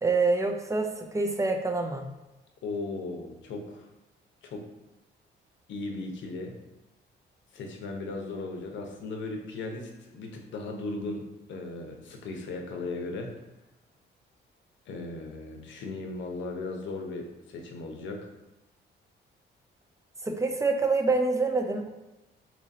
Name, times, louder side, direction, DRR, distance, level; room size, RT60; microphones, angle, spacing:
voice 1, 0.0-2.1 20.2-21.9, right 3 dB, 15° right, 4 dB, 0.5 m, -26 dB
voice 2, 2.6-3.9 4.4-4.7 5.7-6.5 7.5-13.3 14.9-18.3, left 3 dB, 70° left, 2 dB, 0.7 m, -37 dB
3.0 x 2.6 x 4.0 m, 0.99 s
cardioid pair, 90°, 20 cm